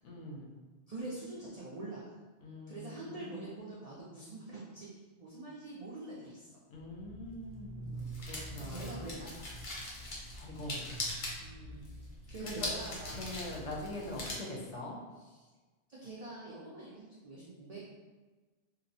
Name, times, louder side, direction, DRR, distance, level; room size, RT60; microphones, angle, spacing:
voice 1, 0.0-0.6 2.4-3.9 6.7-9.2 10.3-11.0 12.4-12.8 13.1-15.0, left 1 dB, 80° left, -1 dB, 0.9 m, -44 dB
voice 2, 0.9-2.2 2.7-6.6 7.9-8.2 8.6-9.5 11.4-12.0 12.3-13.3 15.2-15.5 15.9-17.9, right 2 dB, 75° right, -6 dB, 0.3 m, -45 dB
sound 1, 6.8-14.3, left 1 dB, 50° left, 0.7 m, -42 dB
2.9 x 2.0 x 2.6 m, 1.3 s
omnidirectional pair, 1.2 m